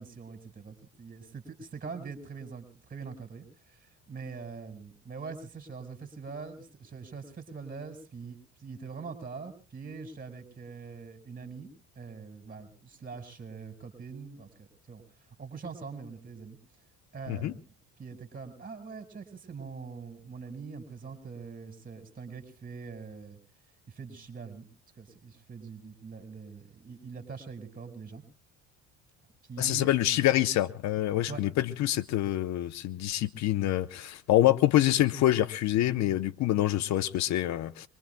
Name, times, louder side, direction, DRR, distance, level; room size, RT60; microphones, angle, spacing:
voice 1, 0.0-11.7 11.9-15.0 15.4-16.6 17.1-17.5 18.0-23.4 23.9-24.7 25.0-28.2 29.4-29.9 31.3-31.4, right 5 dB, 30° right, 5.1 m, -43 dB
voice 2, 29.6-37.9, left 14 dB, 60° left, 0.9 m, -26 dB
24.5 x 23.0 x 2.2 m
supercardioid pair, 95°, 31 cm